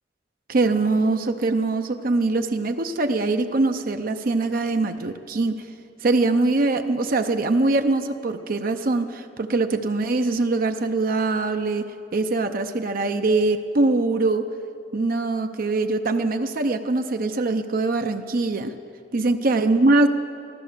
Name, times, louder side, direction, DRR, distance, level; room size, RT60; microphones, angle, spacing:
voice 1, 0.5-5.6 6.0-14.5 14.9-18.8 19.1-20.1, right 2 dB, 50° right, 6 dB, 0.6 m, -22 dB
15.5 x 13.0 x 6.7 m, 2.7 s
head